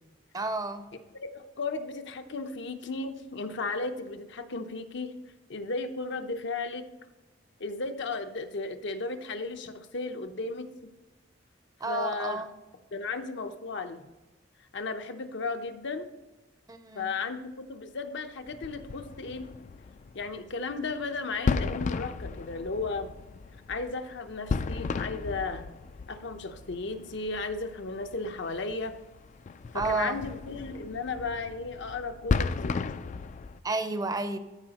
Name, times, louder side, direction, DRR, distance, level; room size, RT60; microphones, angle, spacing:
voice 1, 0.3-0.9 11.8-12.5 16.7-17.1 29.7-30.2 33.6-34.4, right 3 dB, 20° right, 0.6 m, -31 dB
voice 2, 1.2-5.2 5.5-6.9 7.6-10.9 11.9-12.4 12.9-14.0 14.7-16.1 16.9-19.5 20.1-23.1 23.7-25.7 26.1-29.0 29.7-32.8, left 3 dB, 65° left, 0.7 m, -35 dB
sound 1, 18.5-33.6, left 4 dB, 40° left, 0.3 m, -35 dB
14.0 x 4.8 x 2.9 m
head